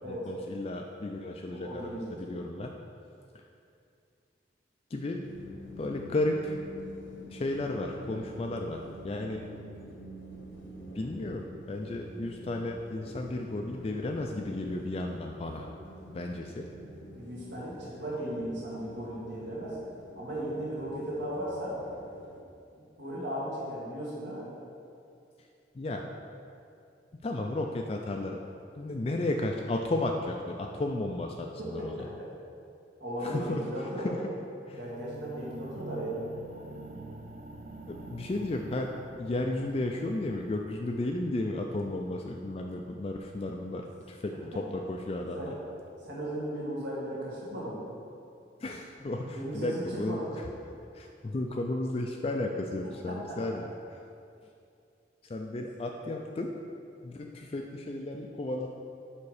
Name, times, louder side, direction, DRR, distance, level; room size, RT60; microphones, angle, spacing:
voice 1, 0.0-2.7 4.9-5.3 5.8-6.6 7.3-9.4 10.9-15.7 16.1-16.7 25.7-26.0 27.2-28.5 28.8-32.1 33.2-33.6 34.0-34.2 34.7-34.8 37.9-45.5 48.6-50.4 50.9-53.7 55.2-56.5 57.0-58.8, left 2 dB, 30° left, 1 dB, 0.3 m, -33 dB
voice 2, 1.5-2.1 17.1-19.8 20.1-21.8 23.0-24.5 32.0-32.3 33.0-34.1 34.8-36.2 45.3-45.5 46.1-47.8 49.3-50.3 53.1-53.4, right 1 dB, 70° right, -7 dB, 1.7 m, -36 dB
sound 1, 5.2-22.4, equal, 80° left, 1.0 m, -47 dB
sound 2, 34.6-44.7 45.4-45.5, right 2 dB, 40° right, 0.5 m, -48 dB
7.0 x 5.2 x 4.8 m, 2.5 s
head